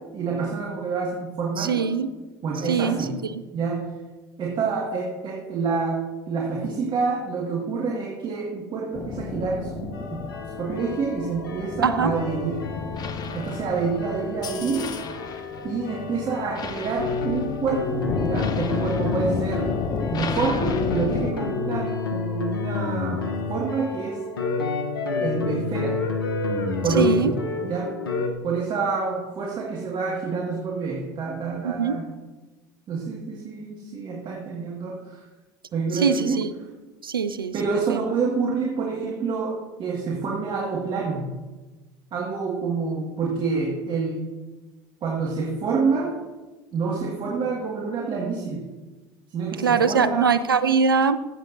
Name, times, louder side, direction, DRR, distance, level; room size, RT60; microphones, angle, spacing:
voice 1, 0.1-2.0 2.4-3.2 3.5-3.8 4.4-10.2 10.6-12.6 13.3-14.9 15.6-19.7 20.1-24.2 25.2-26.0 26.8-27.9 28.4-32.1 32.9-35.2 35.7-36.4 37.5-41.3 42.1-44.3 45.0-46.1 46.7-48.7 49.3-50.3, right 4 dB, 45° right, -3 dB, 1.9 m, -27 dB
voice 2, 1.6-2.1 2.7-3.1 11.8-12.1 27.0-27.3 31.6-32.0 35.9-36.5 37.0-37.5 37.9-38.0 49.6-51.2, right 5 dB, 90° right, 13 dB, 0.4 m, -22 dB
sound 1, 8.9-21.3, left 5 dB, 35° left, 0.8 m, -32 dB
sound 2, 9.9-28.3, left 4 dB, 80° left, 0.9 m, -30 dB
14.5 x 8.0 x 2.6 m, 1.2 s
figure-of-eight pair, 65°, 12 cm